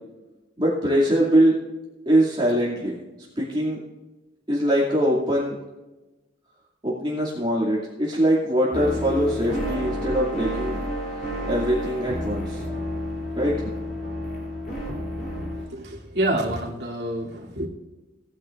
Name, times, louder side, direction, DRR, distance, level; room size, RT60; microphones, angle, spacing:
voice 1, 0.6-1.5 2.1-3.0 3.4-3.8 4.5-5.6 6.8-10.8 11.4-12.6 13.4-13.5, right 1 dB, 25° right, -7 dB, 2.5 m, -22 dB
sound 1, 8.7-15.7, equal, 50° left, 3.3 m, -30 dB
voice 2, 15.7-17.7, right 1 dB, 60° right, -3 dB, 3.0 m, -27 dB
19.0 x 10.5 x 2.5 m, 1.1 s
head